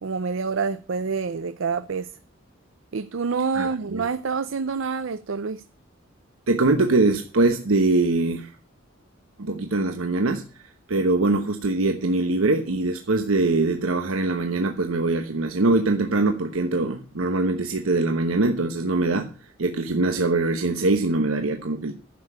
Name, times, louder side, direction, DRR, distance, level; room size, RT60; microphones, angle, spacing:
voice 1, 0.0-2.1 2.9-5.6, right 5 dB, 70° right, 0.5 m, -27 dB
voice 2, 3.5-4.1 6.5-8.5 9.4-10.4 10.9-19.3 19.6-21.9, right 2 dB, 90° right, 1.0 m, -22 dB
10.5 x 6.8 x 7.3 m
head